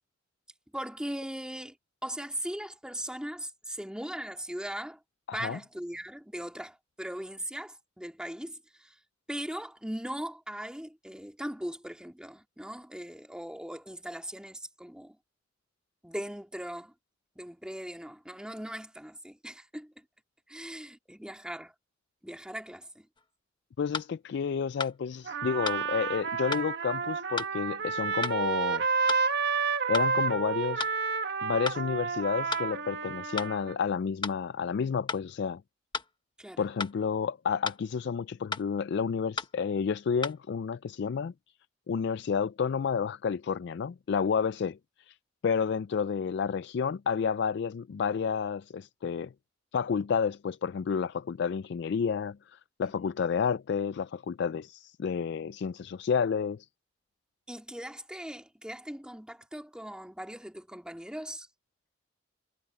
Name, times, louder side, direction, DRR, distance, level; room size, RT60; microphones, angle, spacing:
voice 1, 0.7-1.8 2.0-5.0 5.3-8.9 9.3-15.2 16.0-16.9 17.4-20.0 20.5-21.7 22.2-23.1 36.4-36.7 52.8-53.1 57.5-61.5, right 1 dB, 5° right, 2.7 m, -39 dB
voice 2, 5.3-5.6 23.8-28.8 29.9-30.9 31.4-35.6 36.6-41.3 41.9-45.2 45.4-49.3 49.7-56.7, left 6 dB, 65° left, 0.4 m, -30 dB
sound 1, 23.2-23.3 23.9-24.1 24.8-25.0 25.6-25.8 26.5-26.7 27.4-27.5 28.2-28.4 29.1-29.2 29.9-30.1 30.8-31.0 31.7-31.8 32.5-32.7 33.4-33.5 34.2-34.4 35.1-35.2 35.9-36.1 36.8-37.0 37.6-37.8 38.5-38.7 39.4-39.5 40.2-40.4, left 4 dB, 25° left, 1.1 m, -34 dB
Trumpet, 25.3-33.7, right 5 dB, 65° right, 1.8 m, -30 dB
head